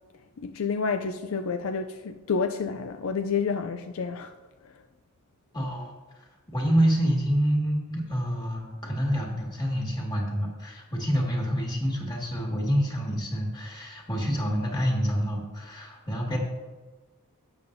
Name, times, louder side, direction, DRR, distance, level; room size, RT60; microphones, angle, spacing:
voice 1, 0.4-4.3, left 5 dB, 65° left, 0.4 m, -29 dB
voice 2, 5.5-5.9 6.5-16.4, equal, 20° left, 2.0 m, -27 dB
12.0 x 8.7 x 2.7 m
head